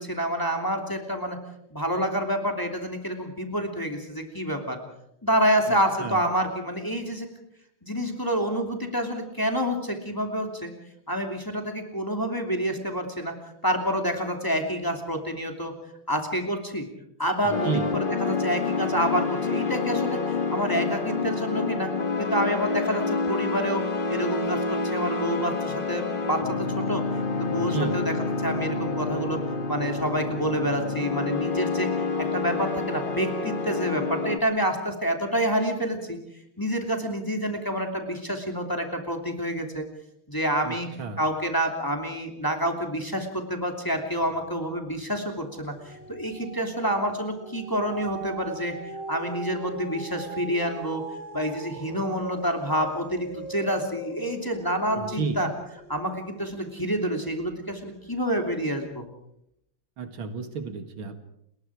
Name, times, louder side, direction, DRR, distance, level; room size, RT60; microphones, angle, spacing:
voice 1, 0.0-1.4 1.7-4.8 5.2-7.3 7.8-10.7 11.1-13.4 13.6-15.7 16.1-16.9 17.2-21.9 22.2-23.8 24.1-27.0 27.3-28.1 28.4-29.4 29.7-31.9 32.2-36.2 36.6-39.8 40.3-40.9 41.2-48.7 49.1-51.0 51.3-55.5 55.9-59.0, equal, 10° left, 3 dB, 2.8 m, -28 dB
voice 2, 5.7-6.2 17.4-17.9 27.6-28.0 40.6-41.2 54.9-55.4 60.0-61.2, right 4 dB, 75° right, 8 dB, 2.6 m, -32 dB
sound 1, 17.5-34.4, left 4 dB, 30° left, 1.1 m, -28 dB
sound 2, 44.1-44.7 45.0-57.5 58.1-58.2, right 2 dB, 30° right, 4.0 m, -41 dB
30.0 x 21.0 x 4.9 m, 0.78 s
omnidirectional pair, 2.3 m